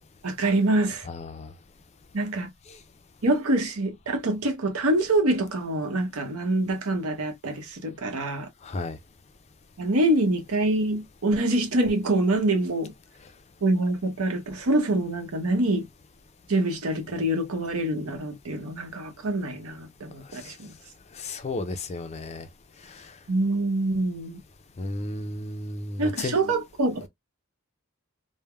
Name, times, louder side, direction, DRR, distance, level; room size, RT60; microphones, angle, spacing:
voice 1, 0.2-1.1 2.1-2.5 3.2-8.5 9.8-12.9 13.6-15.9 16.5-20.7 23.3-24.4 26.0-27.1, right 2 dB, 85° right, 0.8 m, -25 dB
voice 2, 1.1-1.5 2.7-2.8 8.6-9.0 20.3-20.5 21.1-22.5 22.8-23.1 24.8-26.4, left 2 dB, 30° left, 0.4 m, -33 dB
3.3 x 2.1 x 2.2 m
head